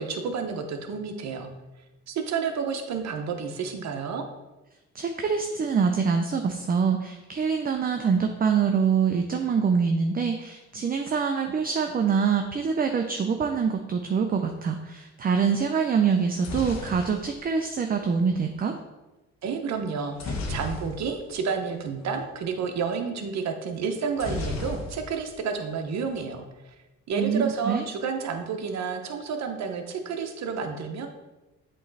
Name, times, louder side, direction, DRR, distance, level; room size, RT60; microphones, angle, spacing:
voice 1, 0.0-1.5 2.1-4.2 19.4-26.7 27.1-31.1, right 5 dB, 60° right, 5 dB, 0.9 m, -30 dB
voice 2, 4.9-18.8 27.2-27.8, right 6 dB, 30° right, 4 dB, 0.5 m, -25 dB
sound 1, 16.1-18.2 20.2-21.3 21.6-21.8 22.0-22.2 24.2-25.3 25.6-26.2, left 2 dB, 60° left, 1.2 m, -35 dB
7.5 x 3.2 x 4.0 m, 1.1 s
cardioid pair, 90°, 30 cm